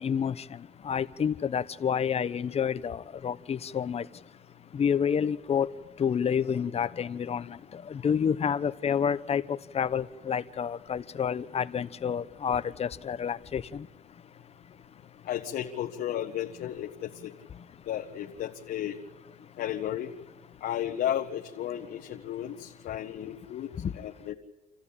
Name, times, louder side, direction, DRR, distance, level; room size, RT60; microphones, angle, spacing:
voice 1, 0.0-4.0 4.7-5.7 6.0-13.9 23.8-23.9, left 7 dB, 35° left, 13 dB, 0.9 m, -29 dB
voice 2, 15.2-17.3 17.9-19.0 19.6-20.1 20.6-23.7 23.9-24.3, left 11 dB, 65° left, 1 dB, 1.5 m, -33 dB
27.5 x 14.5 x 8.7 m, 1.2 s
cardioid pair, 110°, 17 cm